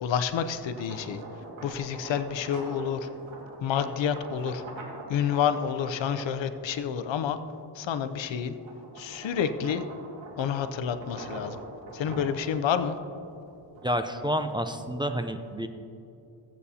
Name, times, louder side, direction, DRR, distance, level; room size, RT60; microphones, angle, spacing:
voice 1, 0.0-1.2 1.6-3.1 3.6-4.6 5.1-7.4 7.7-8.6 9.0-9.8 10.4-11.6 11.9-13.0, left 8 dB, 80° left, 10 dB, 0.7 m, -29 dB
sound 1, 0.6-7.2 7.7-14.9, right 2 dB, 90° right, 2.1 m, -44 dB
voice 2, 13.8-15.7, equal, 10° right, 6 dB, 0.4 m, -29 dB
16.0 x 8.3 x 2.8 m, 2.8 s
cardioid pair, 95°, 45 cm